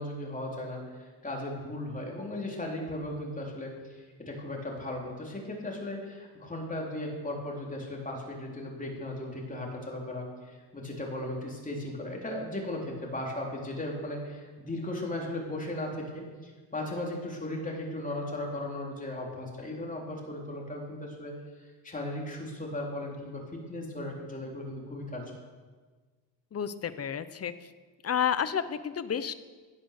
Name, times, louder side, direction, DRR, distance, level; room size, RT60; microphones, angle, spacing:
voice 1, 0.0-21.3 21.8-25.3, left 1 dB, 15° left, -1 dB, 3.5 m, -37 dB
voice 2, 26.5-27.7 28.0-29.3, left 8 dB, 35° left, 12 dB, 0.8 m, -31 dB
16.0 x 10.0 x 6.6 m, 1.4 s
cardioid pair, 130°, 46 cm